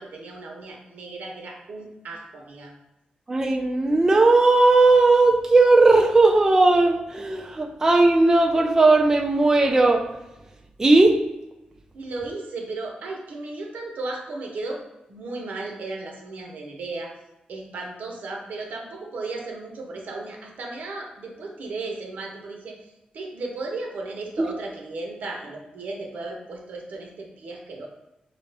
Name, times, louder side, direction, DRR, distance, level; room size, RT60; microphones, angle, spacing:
voice 1, 0.0-2.7 11.9-14.8 15.1-17.1 17.5-22.8 23.1-27.9, right 3 dB, 80° right, 0 dB, 1.0 m, -35 dB
voice 2, 3.3-10.0 10.8-11.1 24.4-24.5, right 2 dB, 20° right, 1 dB, 0.4 m, -17 dB
5.4 x 2.5 x 3.3 m, 0.94 s
wide cardioid pair, 145°, 3 cm